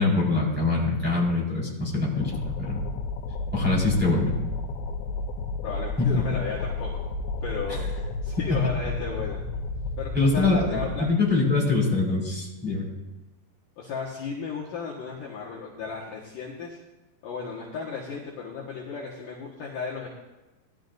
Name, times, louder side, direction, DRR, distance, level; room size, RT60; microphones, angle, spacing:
voice 1, 0.0-2.8 3.5-4.3 6.0-6.3 8.5-8.6 10.1-12.9, left 3 dB, ahead, -5 dB, 3.9 m, -24 dB
sound 1, 2.2-11.0, left 3 dB, 85° left, 3.1 m, -32 dB
voice 2, 5.6-6.9 7.4-7.9 8.2-9.4 10.0-11.1 13.8-16.8 17.2-20.1, left 5 dB, 60° left, -4 dB, 2.7 m, -34 dB
19.5 x 12.5 x 2.6 m, 1.1 s
omnidirectional pair, 5.0 m